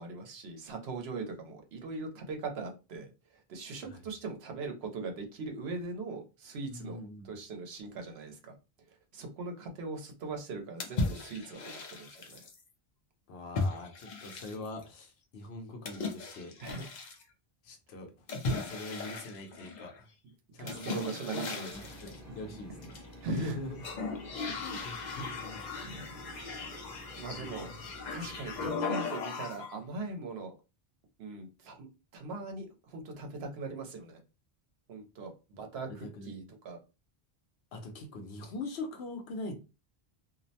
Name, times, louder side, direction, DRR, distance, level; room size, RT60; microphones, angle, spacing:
voice 1, 0.0-3.1 3.5-7.0 7.2-8.6 9.1-12.5 16.6-16.8 20.6-21.7 22.1-22.3 23.2-23.6 25.8-26.2 26.5-26.7 27.2-27.7 28.1-30.5 31.2-31.9 32.1-34.2 34.9-35.3 35.6-36.8, right 3 dB, 90° right, 0.9 m, -40 dB
voice 2, 6.7-7.3 13.3-16.6 17.6-18.3 18.5-20.1 20.5-22.9 23.3-23.9 24.5-25.9 27.3-27.8 28.6-28.7 35.9-36.4 37.7-39.5, left 2 dB, 85° left, 0.9 m, -43 dB
sound 1, 10.8-12.6 13.5-14.8 15.8-17.2 18.3-20.0 20.7-22.2 22.8-23.5 23.8-29.8, left 3 dB, 55° left, 0.6 m, -37 dB
sound 2, 21.7-28.7, equal, 20° right, 0.7 m, -50 dB
2.5 x 2.0 x 2.7 m
omnidirectional pair, 1.0 m